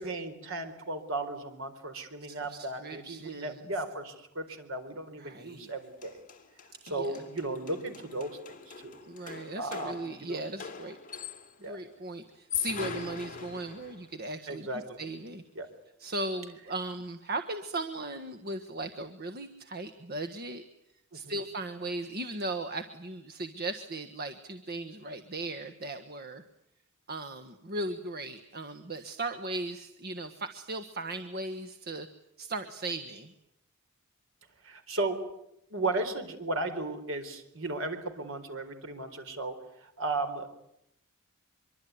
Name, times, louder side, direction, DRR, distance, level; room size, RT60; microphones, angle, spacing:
voice 1, 0.0-6.2 6.8-9.0 9.6-10.4 11.6-11.8 14.5-15.0 15.5-15.7 21.2-21.3 34.6-35.2 35.7-39.6 39.8-40.6, right 2 dB, 65° right, 8 dB, 4.2 m, -35 dB
voice 2, 2.2-3.6 5.2-5.7 6.9-7.2 9.0-11.0 11.6-15.4 16.0-20.6 21.1-26.4 27.1-32.1 32.4-33.3, right 2 dB, 45° right, 9 dB, 1.5 m, -37 dB
sound 1, 5.7-5.8 6.0-11.7 12.3-14.1, left 8 dB, 40° left, 2.7 m, -41 dB
24.5 x 24.0 x 9.6 m, 0.79 s
head